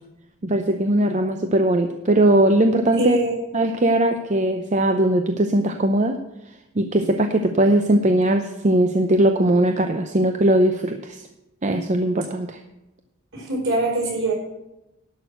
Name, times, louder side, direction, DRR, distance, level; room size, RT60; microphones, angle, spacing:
voice 1, 0.4-3.2 3.5-6.2 6.8-11.2 11.6-12.6, right 1 dB, 35° right, 6 dB, 0.7 m, -19 dB
voice 2, 3.0-3.3 13.3-14.3, right 1 dB, 60° right, -2 dB, 4.6 m, -23 dB
11.5 x 6.2 x 7.8 m, 0.91 s
head